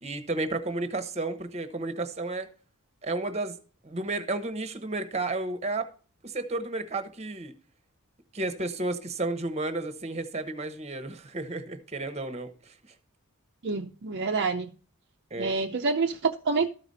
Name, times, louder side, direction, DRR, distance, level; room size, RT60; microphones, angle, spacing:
voice 1, 0.0-2.5 3.0-3.6 3.8-5.9 6.2-7.5 8.3-12.8 15.3-15.6, right 2 dB, 30° right, 1.0 m, -32 dB
voice 2, 13.6-14.7 15.4-16.7, right 4 dB, 50° right, 0.6 m, -27 dB
13.0 x 5.0 x 4.0 m
head